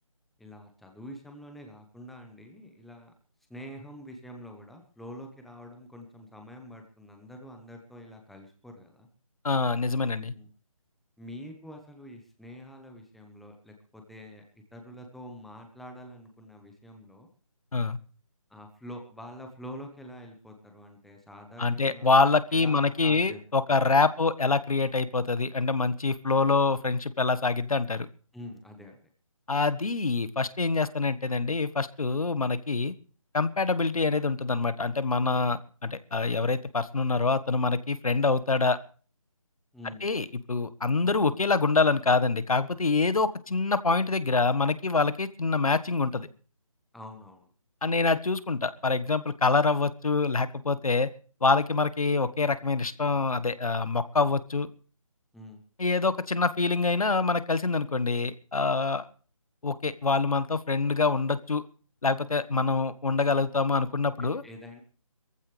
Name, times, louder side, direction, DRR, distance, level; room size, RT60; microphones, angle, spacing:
voice 1, 0.4-3.1 3.5-9.1 10.3-10.5 11.2-17.3 18.5-22.1 22.5-23.4 28.3-29.0 39.7-40.1 46.9-47.5 55.3-55.6 64.2-64.8, equal, ahead, 3 dB, 0.9 m, -46 dB
voice 2, 9.4-10.3 17.7-18.0 21.6-28.1 29.5-32.9 33.3-38.8 40.0-46.3 47.8-51.1 51.4-54.7 55.8-59.0 59.6-61.6 62.0-64.4, left 3 dB, 80° left, 14 dB, 1.4 m, -25 dB
21.0 x 15.0 x 3.4 m, 0.41 s
figure-of-eight pair, 165°, 18 cm